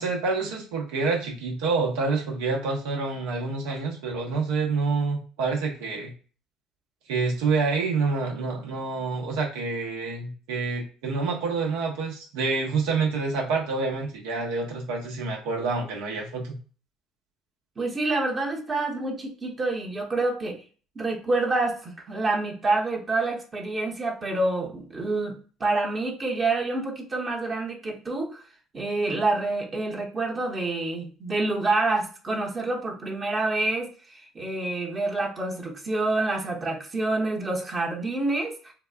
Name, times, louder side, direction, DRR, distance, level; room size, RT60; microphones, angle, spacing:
voice 1, 0.0-6.1 7.1-16.6, right 4 dB, 80° right, -1 dB, 1.0 m, -27 dB
voice 2, 17.8-20.6 21.0-28.4 28.7-38.7, right 2 dB, 35° right, -1 dB, 1.0 m, -27 dB
3.9 x 2.2 x 2.4 m, 0.38 s
hypercardioid pair, 70°, 0 cm